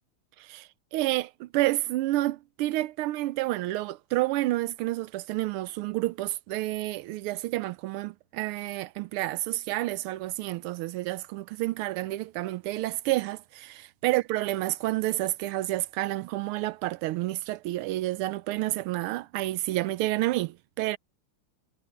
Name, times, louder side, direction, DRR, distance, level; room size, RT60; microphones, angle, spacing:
voice 1, 0.4-21.0, right 17 dB, 90° right, 1.5 m, -29 dB
omnidirectional pair, 2.3 m